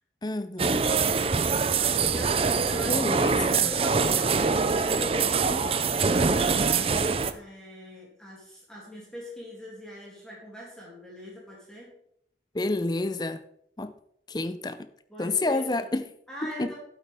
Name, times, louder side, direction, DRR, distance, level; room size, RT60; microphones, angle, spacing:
voice 1, 0.2-0.9 2.8-3.7 12.5-13.4 13.8-13.9 14.3-14.9 15.2-16.1 16.6-16.7, left 2 dB, 20° left, 0.5 m, -29 dB
sound 1, 0.6-7.3, right 5 dB, 30° right, 0.5 m, -24 dB
voice 2, 1.6-3.0 3.6-11.9 15.1-15.9 16.3-16.8, left 1 dB, 5° left, 2.7 m, -42 dB
11.5 x 8.1 x 3.6 m
head